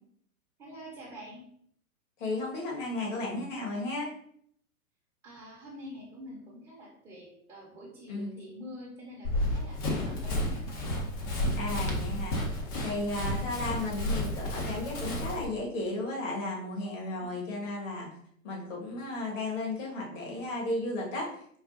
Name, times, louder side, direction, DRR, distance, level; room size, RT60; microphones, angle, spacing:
voice 1, 0.6-1.5 5.2-11.8, equal, 10° right, -6 dB, 0.7 m, -47 dB
voice 2, 2.2-4.1 8.1-8.3 11.6-12.4 12.8-18.1 18.4-21.6, left 2 dB, 60° left, -2 dB, 1.5 m, -34 dB
Run, 9.2-15.5, left 1 dB, 25° left, 0.6 m, -32 dB
4.8 x 2.2 x 2.5 m, 0.66 s
hypercardioid pair, 130°, 43 cm